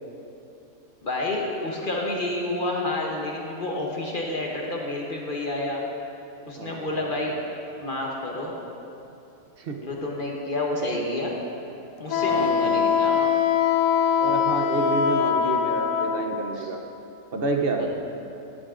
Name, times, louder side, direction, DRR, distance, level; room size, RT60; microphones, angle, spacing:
voice 1, 1.0-5.8 6.5-7.3 7.8-8.6 9.8-11.3 12.0-13.3 16.5-16.7 17.8-17.9, left 2 dB, 40° left, -1 dB, 1.0 m, -29 dB
voice 2, 6.6-7.1 9.6-9.8 12.2-13.0 14.2-16.8 17.3-17.8, right 3 dB, 50° right, 3 dB, 0.7 m, -29 dB
Wind instrument woodwind instrument, 12.1-16.2, left 7 dB, 70° left, 0.9 m, -22 dB
14.0 x 9.7 x 2.5 m, 2.8 s
omnidirectional pair, 1.6 m